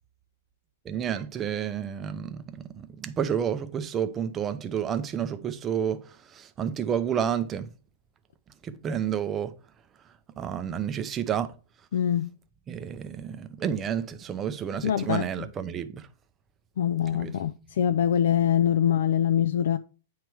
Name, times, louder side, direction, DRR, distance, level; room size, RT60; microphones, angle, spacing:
voice 1, 0.9-6.0 6.3-7.7 8.6-9.5 10.4-11.5 12.7-16.0 17.1-17.4, right 8 dB, 15° right, 0.5 m, -30 dB
voice 2, 11.9-12.3 14.8-15.3 16.8-19.8, left 9 dB, 70° left, 0.4 m, -24 dB
9.1 x 3.1 x 4.6 m
supercardioid pair, 165°, 0 cm